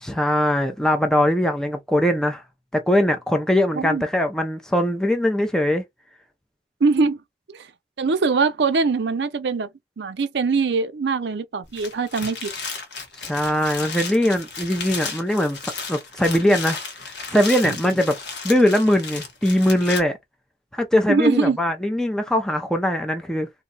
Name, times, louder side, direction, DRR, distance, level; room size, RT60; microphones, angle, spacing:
voice 1, 0.0-2.4 2.7-5.8 13.2-15.6 15.9-18.2 18.4-20.2 20.7-23.5, left 1 dB, 5° left, 0.5 m, -21 dB
voice 2, 6.8-7.2 7.5-7.7 8.0-9.7 10.0-12.5 17.6-17.8 21.1-21.6, right 4 dB, 75° right, 0.5 m, -22 dB
sound 1, 11.6-20.0, left 4 dB, 75° left, 1.0 m, -34 dB
2.7 x 2.2 x 3.9 m
head